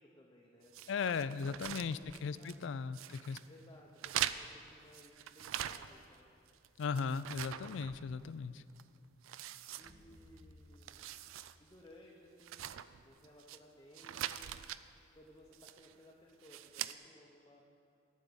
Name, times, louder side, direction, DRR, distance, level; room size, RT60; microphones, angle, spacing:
voice 1, 0.0-0.9 1.2-2.6 3.1-6.3 9.8-11.1 11.6-12.7 13.0-14.5 15.1-17.6, left 1 dB, 20° left, -3 dB, 0.8 m, -60 dB
sound 1, 0.7-2.7 2.9-3.5 4.0-6.2 6.5-8.4 8.8-8.9 9.2-10.4 10.7-11.6 11.9-12.0 12.4-13.6 13.9-14.8 15.5-16.0 16.4-16.9, right 12 dB, 75° right, 0.3 m, -43 dB
voice 2, 0.9-3.4 6.8-8.6, left 5 dB, 65° left, 15 dB, 0.3 m, -37 dB
sound 2, 9.8-12.4, left 1 dB, 20° right, 1.2 m, -62 dB
11.5 x 5.4 x 8.7 m, 2.5 s
head